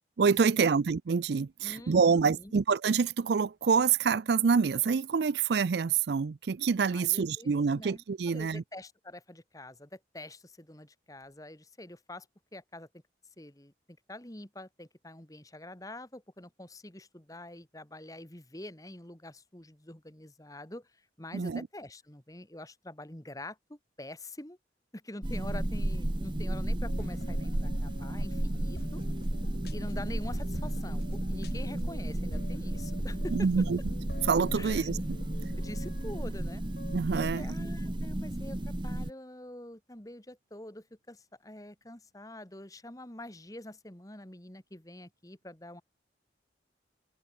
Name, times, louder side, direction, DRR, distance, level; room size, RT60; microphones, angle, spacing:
voice 1, 0.2-8.6 21.3-21.6 33.3-33.8 34.3-35.2 36.9-37.4, right 5 dB, 65° right, 0.4 m, -26 dB
voice 2, 1.6-2.5 6.9-12.3 12.5-13.0 13.4-13.7 14.1-20.9 21.2-24.6 24.9-29.0 29.7-33.7 34.5-34.9 35.6-36.6 37.1-45.8, left 1 dB, 20° left, 1.8 m, -45 dB
sound 1, 25.2-39.1, right 1 dB, 25° right, 0.9 m, -33 dB
sound 2, 26.8-37.0, left 1 dB, 60° left, 3.9 m, -48 dB
head